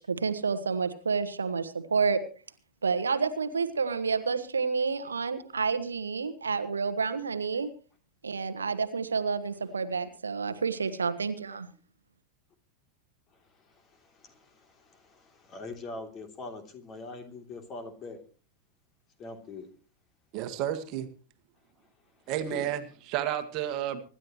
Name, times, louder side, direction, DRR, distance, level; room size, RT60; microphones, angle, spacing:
voice 1, 0.0-2.2 2.8-7.7 8.2-11.7, right 5 dB, 75° right, 10 dB, 1.3 m, -29 dB
voice 2, 13.3-18.2 19.2-19.7 22.4-22.7, left 3 dB, 30° left, 6 dB, 3.1 m, -43 dB
voice 3, 20.3-21.1 22.3-24.0, right 11 dB, 40° right, 9 dB, 1.7 m, -31 dB
25.0 x 11.5 x 3.1 m, 0.37 s
figure-of-eight pair, 90°, 0 cm